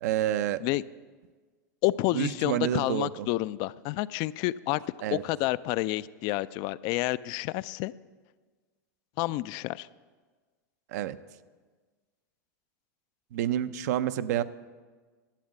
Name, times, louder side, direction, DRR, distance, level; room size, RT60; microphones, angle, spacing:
voice 1, 0.0-0.6 2.1-3.3 5.0-5.2 10.9-11.2 13.3-14.4, right 11 dB, 70° right, 13 dB, 0.6 m, -28 dB
voice 2, 1.8-4.8 5.1-7.9 9.2-9.9, left 17 dB, 50° left, 17 dB, 0.3 m, -29 dB
11.5 x 7.9 x 7.7 m, 1.4 s
hypercardioid pair, 120°, 9 cm